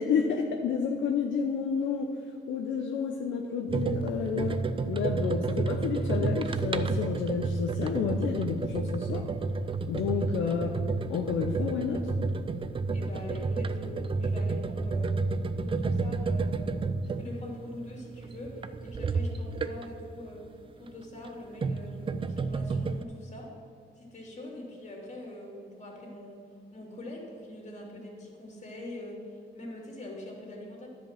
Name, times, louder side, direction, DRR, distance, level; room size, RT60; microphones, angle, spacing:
voice 1, 0.0-2.1 2.5-9.2 9.9-10.8 11.1-12.0, left 6 dB, 75° left, 3 dB, 0.7 m, -30 dB
sound 1, 3.7-20.1 21.1-23.0, right 3 dB, 25° right, 0.4 m, -31 dB
voice 2, 12.9-15.2 15.6-16.8 17.2-20.4 20.8-23.5 24.0-26.4 26.7-30.9, left 1 dB, 35° left, -1 dB, 2.8 m, -43 dB
10.5 x 5.2 x 7.4 m, 2.2 s
cardioid pair, 90°, 20 cm